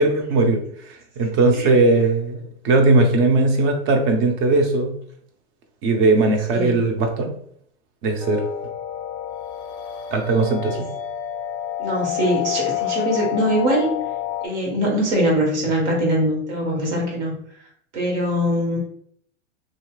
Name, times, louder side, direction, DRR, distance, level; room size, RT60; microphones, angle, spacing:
voice 1, 0.0-4.9 5.8-7.3 8.0-8.4 10.1-10.9, right 3 dB, 40° right, 4 dB, 0.7 m, -19 dB
sound 1, 8.2-14.5, left 12 dB, 40° left, 0.5 m, -29 dB
voice 2, 11.8-13.9 14.4-17.3 17.9-18.8, equal, 65° right, -2 dB, 1.4 m, -22 dB
2.8 x 2.4 x 2.3 m, 0.63 s
hypercardioid pair, 100°, 37 cm